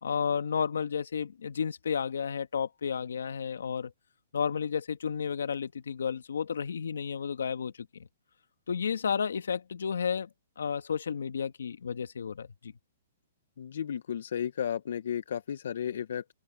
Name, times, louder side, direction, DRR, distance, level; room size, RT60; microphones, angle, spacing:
voice 1, 0.0-3.9 4.3-7.9 8.7-10.3 10.6-12.7, left 6 dB, 85° left, 1.8 m, -32 dB
voice 2, 13.6-16.3, left 8 dB, 70° left, 0.8 m, -33 dB
open air
hypercardioid pair, 150°, 0 cm